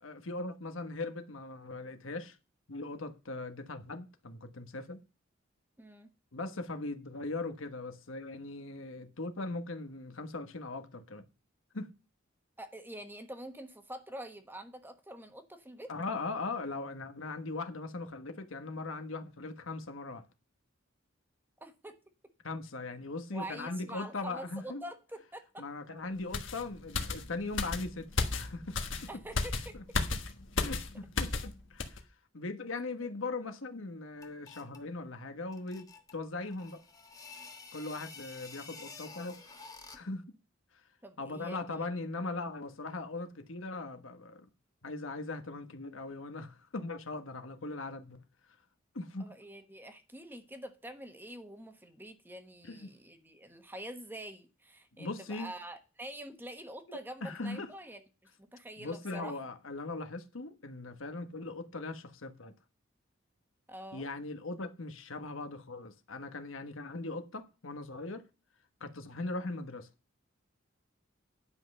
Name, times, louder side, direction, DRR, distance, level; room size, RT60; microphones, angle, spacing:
voice 1, 0.0-2.4 2.7-5.0 6.3-11.2 11.7-11.9 15.9-20.2 22.4-24.8 25.6-28.8 30.6-32.0 32.3-36.8 37.7-39.5 39.9-40.3 41.2-44.5 44.8-48.2 48.9-49.3 52.6-52.9 55.0-55.5 57.2-57.7 58.8-62.5 63.9-68.3 68.8-69.9, left 3 dB, 85° left, 1.3 m, -39 dB
voice 2, 5.8-6.1 12.6-15.9 21.6-21.9 23.3-25.6 29.1-29.8 41.0-41.8 49.2-58.0 58.4-59.4 63.7-64.0, right 1 dB, 10° right, 1.2 m, -46 dB
sound 1, 26.3-31.5 31.8-32.0, left 3 dB, 70° left, 1.4 m, -34 dB
sound 2, 34.2-34.9 35.5-40.2, left 4 dB, 20° left, 1.4 m, -50 dB
10.5 x 5.6 x 6.5 m
head